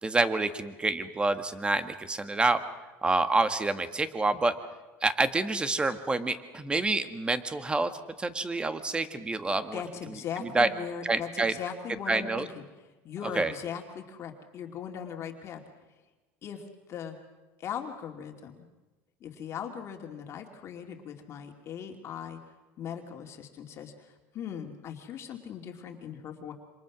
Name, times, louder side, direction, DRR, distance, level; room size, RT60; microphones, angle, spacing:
voice 1, 0.0-2.6 3.0-4.5 5.0-7.9 8.2-9.8 10.4-10.7 11.0-11.5 12.1-12.4 13.4-13.5, right 3 dB, 15° right, 10 dB, 1.7 m, -27 dB
voice 2, 9.7-12.6 13.0-15.6 16.4-16.6 16.9-17.2 17.6-18.5 19.2-22.4 22.8-26.5, left 8 dB, 45° left, 3 dB, 2.7 m, -39 dB
28.0 x 26.5 x 6.2 m, 1.2 s
supercardioid pair, 125°, 7 cm